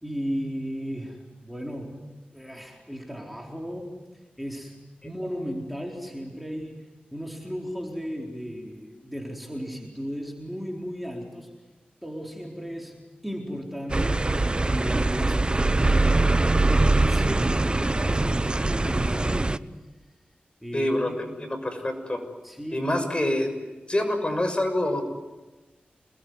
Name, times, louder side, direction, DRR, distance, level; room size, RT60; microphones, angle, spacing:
voice 1, 0.0-4.0 4.4-11.5 12.0-15.5 17.1-19.7 20.6-21.3 22.4-23.3, equal, ahead, 0 dB, 4.4 m, -35 dB
sound 1, 13.9-19.6, right 2 dB, 30° right, 0.9 m, -22 dB
voice 2, 20.7-21.1 21.4-22.2 22.7-23.5 23.9-25.0, left 1 dB, 30° left, 7 dB, 6.4 m, -26 dB
28.0 x 21.0 x 9.6 m, 1.2 s
cardioid pair, 50°, 3 cm